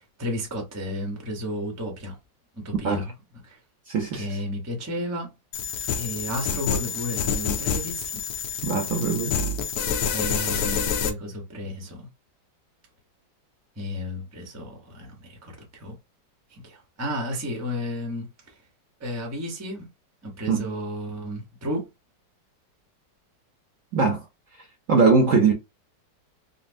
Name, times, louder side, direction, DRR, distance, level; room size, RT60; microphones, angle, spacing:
voice 1, 0.0-2.2 2.5-3.1 3.4-3.6 4.1-5.3 5.9-8.2 10.1-12.1 13.8-16.0 16.5-18.5 19.0-19.9 20.2-21.9, equal, 20° right, 0.4 m, -33 dB
voice 2, 3.9-4.3 8.6-9.4 20.5-20.7 23.9-24.2 24.9-25.5, right 4 dB, 65° right, 0.8 m, -21 dB
sound 1, 5.5-11.1, left 6 dB, 75° left, 1.1 m, -27 dB
4.0 x 2.0 x 2.5 m
omnidirectional pair, 2.0 m